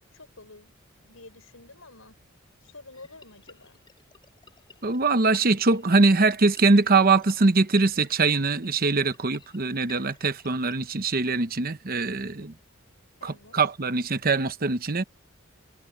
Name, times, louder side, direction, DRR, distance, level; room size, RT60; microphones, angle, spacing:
voice 1, 0.1-2.1 2.6-3.8 12.4-12.5 13.2-13.7, left 3 dB, 85° left, 5.5 m, -49 dB
sound 1, 2.9-11.7, left 4 dB, 20° left, 4.5 m, -54 dB
voice 2, 4.8-12.5 13.2-15.0, right 3 dB, 45° right, 1.0 m, -22 dB
head